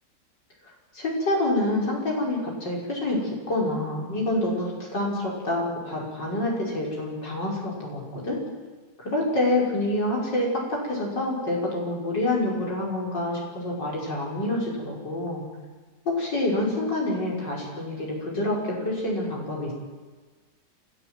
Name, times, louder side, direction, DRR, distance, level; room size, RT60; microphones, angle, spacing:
voice 1, 0.9-3.2 3.5-8.4 9.0-15.4 16.1-19.7, left 1 dB, 75° left, -3 dB, 6.1 m, -27 dB
29.5 x 14.5 x 7.8 m, 1.3 s
omnidirectional pair, 1.9 m